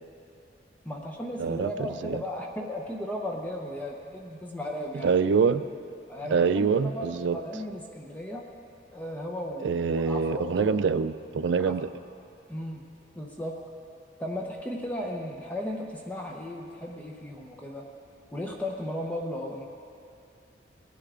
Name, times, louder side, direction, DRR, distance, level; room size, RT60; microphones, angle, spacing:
voice 1, 0.8-5.2 6.1-8.5 8.9-10.8 11.6-11.7 12.5-12.9 13.1-13.6 14.2-17.8 18.3-19.6, left 1 dB, 10° left, 0 dB, 0.8 m, -35 dB
voice 2, 1.4-1.7 2.0-2.2 5.0-5.6 6.3-7.4 9.6-11.9, right 5 dB, 80° right, 11 dB, 0.4 m, -25 dB
18.0 x 10.0 x 3.7 m, 2.5 s
head